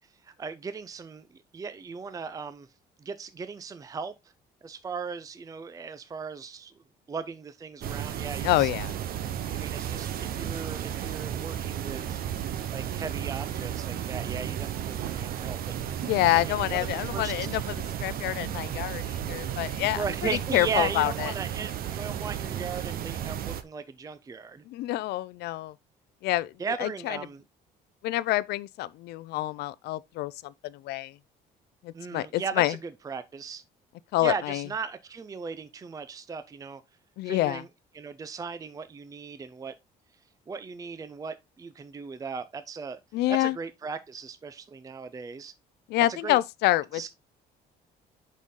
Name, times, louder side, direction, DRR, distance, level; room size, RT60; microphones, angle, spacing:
voice 1, 0.2-2.7 3.0-4.1 4.6-6.7 7.1-8.7 9.5-12.2 12.7-15.6 15.9-17.3 20.0-24.6 26.6-27.4 31.9-33.6 34.2-36.8 37.2-37.7 37.9-39.7 40.5-43.0 43.4-45.5 46.2-46.4 46.9-47.1, right 5 dB, 20° right, 0.5 m, -37 dB
sound 1, 7.8-23.6, right 10 dB, 60° right, 0.8 m, -33 dB
voice 2, 8.4-8.9 16.0-17.6 18.0-21.3 24.7-25.7 26.2-26.5 26.8-27.2 28.0-31.1 31.8-32.8 34.1-34.7 37.2-37.6 43.1-43.6 45.9-47.1, left 16 dB, 75° left, 0.4 m, -27 dB
6.2 x 5.5 x 3.7 m
cardioid pair, 110°, 17 cm